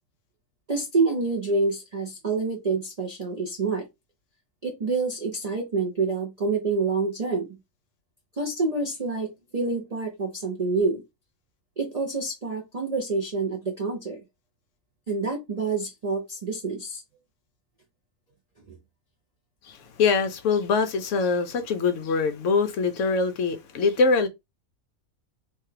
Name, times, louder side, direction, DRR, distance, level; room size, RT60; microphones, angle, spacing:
voice 1, 0.7-3.8 4.6-7.5 8.4-11.0 11.8-14.2 15.1-17.0 18.7-18.8, right 3 dB, 70° right, 0.3 m, -27 dB
voice 2, 19.6-24.3, left 4 dB, 65° left, 0.8 m, -23 dB
3.1 x 2.2 x 3.2 m
omnidirectional pair, 1.6 m